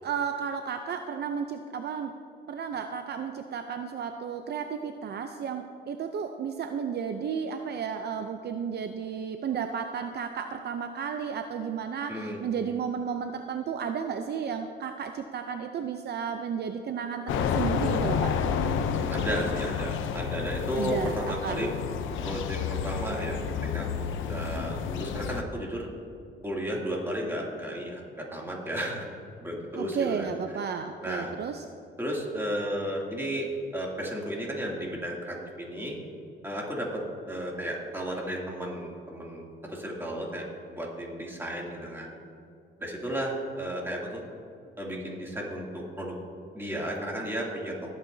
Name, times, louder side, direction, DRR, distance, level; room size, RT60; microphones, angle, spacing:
voice 1, 0.0-2.1 2.5-18.4 20.8-21.6 29.7-31.6, right 7 dB, 55° right, 6 dB, 0.6 m, -33 dB
voice 2, 12.1-12.4 19.1-21.7 22.2-25.9 26.4-29.1 29.4-30.3 31.0-31.3 32.0-33.5 33.7-36.0 36.4-37.0 37.3-40.4 40.7-42.2 42.8-44.2 44.8-46.2 46.5-47.7, equal, 10° right, -3 dB, 2.7 m, -33 dB
sound 1, 17.3-25.4, left 7 dB, 80° left, 0.7 m, -30 dB
18.5 x 8.7 x 2.7 m, 2.4 s
cardioid pair, 90°, 20 cm